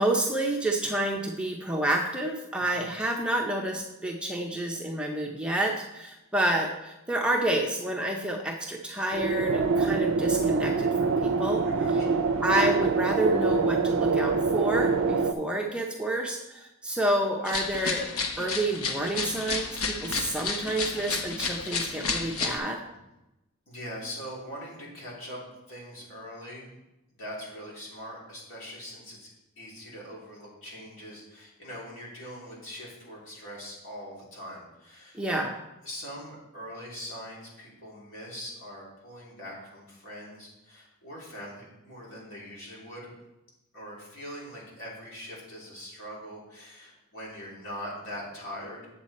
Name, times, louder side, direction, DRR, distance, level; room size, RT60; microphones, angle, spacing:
voice 1, 0.0-11.6 12.4-18.0 18.4-22.8 35.1-35.5, right 1 dB, 5° right, 0 dB, 0.6 m, -29 dB
voice 2, 2.5-2.9 11.6-12.2 22.8-23.0 23.7-26.8 27.1-29.3 29.6-35.2 35.8-43.1 43.7-48.9, equal, 65° left, -5 dB, 3.4 m, -42 dB
sound 1, 9.1-15.3, right 4 dB, 70° right, 0.5 m, -25 dB
sound 2, 17.4-22.6, left 4 dB, 80° left, 0.9 m, -31 dB
7.8 x 7.3 x 4.2 m, 0.95 s
head